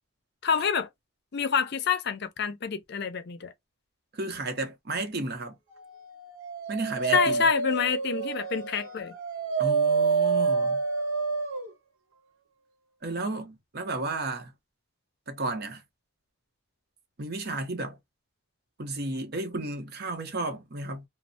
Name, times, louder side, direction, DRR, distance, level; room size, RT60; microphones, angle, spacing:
voice 1, 0.4-0.9 1.3-3.5 7.1-9.1, left 6 dB, 55° left, 0.5 m, -27 dB
voice 2, 4.1-5.5 6.7-7.4 9.6-10.8 13.0-14.5 15.3-15.8 17.2-18.0 18.8-21.0, right 2 dB, 50° right, 0.7 m, -33 dB
Dog, 6.1-11.7, right 4 dB, 85° right, 0.8 m, -27 dB
3.1 x 2.0 x 2.6 m
head